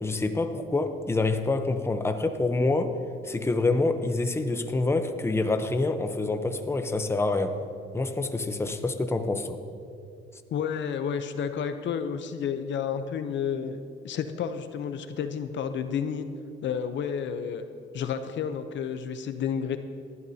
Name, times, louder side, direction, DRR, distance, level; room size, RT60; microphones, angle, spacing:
voice 1, 0.0-2.9 3.2-7.6 7.9-9.6, left 3 dB, 10° left, 8 dB, 0.8 m, -26 dB
voice 2, 10.5-13.8 14.0-16.3 16.6-17.6 17.9-19.8, left 7 dB, 65° left, 9 dB, 0.7 m, -31 dB
18.5 x 12.0 x 2.8 m, 2.5 s
cardioid pair, 90°, 20 cm